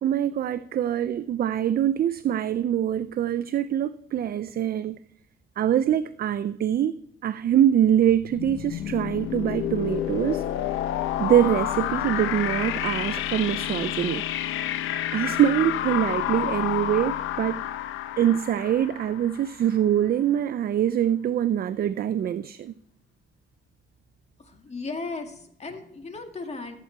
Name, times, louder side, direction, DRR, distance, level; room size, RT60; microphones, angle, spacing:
voice 1, 0.0-5.0 5.6-6.9 7.2-10.4 11.2-14.2 15.1-17.7 18.2-22.7, right 10 dB, 50° right, 0.4 m, -24 dB
sound 1, 8.1-19.8, left 12 dB, 90° left, 0.7 m, -29 dB
voice 2, 24.4-26.8, left 3 dB, 35° left, 1.9 m, -36 dB
14.0 x 8.1 x 4.5 m
cardioid pair, 90°, 20 cm